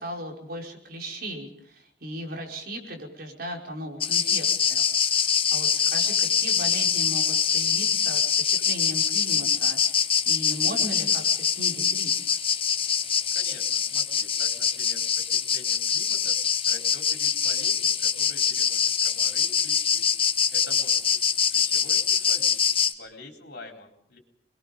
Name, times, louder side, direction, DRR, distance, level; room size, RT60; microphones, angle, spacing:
voice 1, 0.0-12.4, equal, 60° right, 1 dB, 5.2 m, -37 dB
sound 1, 4.0-22.9, left 7 dB, 30° left, 1.2 m, -24 dB
voice 2, 13.3-16.3 16.7-20.0 20.5-21.2 21.5-22.6 22.9-24.2, left 2 dB, 65° left, 3 dB, 4.2 m, -46 dB
27.0 x 21.5 x 5.4 m, 0.62 s
head